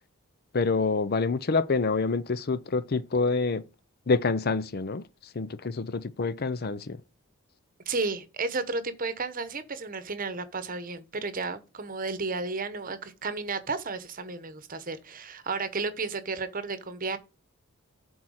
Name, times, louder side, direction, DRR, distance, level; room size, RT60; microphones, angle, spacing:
voice 1, 0.5-3.6 4.1-5.1 5.3-7.0, left 4 dB, 45° left, 0.5 m, -27 dB
voice 2, 7.9-17.2, right 4 dB, 40° right, 1.0 m, -33 dB
7.9 x 4.4 x 6.4 m
head